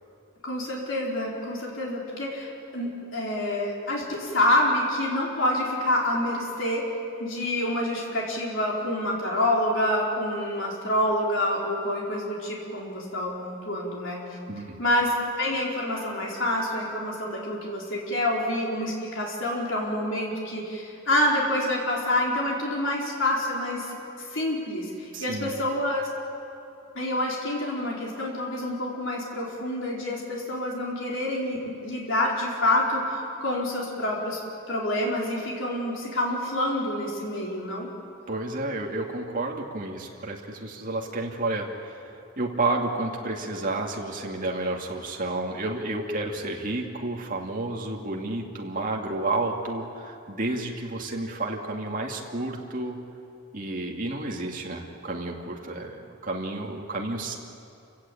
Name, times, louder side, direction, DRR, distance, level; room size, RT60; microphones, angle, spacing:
voice 1, 0.4-6.9 7.2-14.4 14.8-23.9 24.3-26.0 26.9-31.6 31.8-34.4 34.7-37.9, left 1 dB, 60° left, -3 dB, 4.6 m, -27 dB
voice 2, 14.5-14.8 25.1-25.5 38.3-53.0 53.5-57.4, right 2 dB, 40° right, 0 dB, 2.4 m, -31 dB
27.5 x 16.5 x 8.6 m, 2.6 s
head